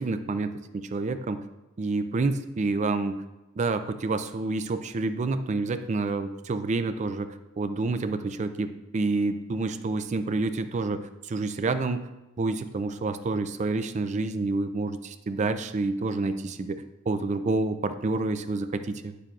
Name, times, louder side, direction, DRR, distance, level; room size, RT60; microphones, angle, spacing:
voice 1, 0.0-1.4 1.8-3.2 3.6-12.0 12.4-19.1, right 3 dB, 35° right, 10 dB, 0.4 m, -28 dB
9.0 x 6.7 x 2.4 m, 1.0 s
head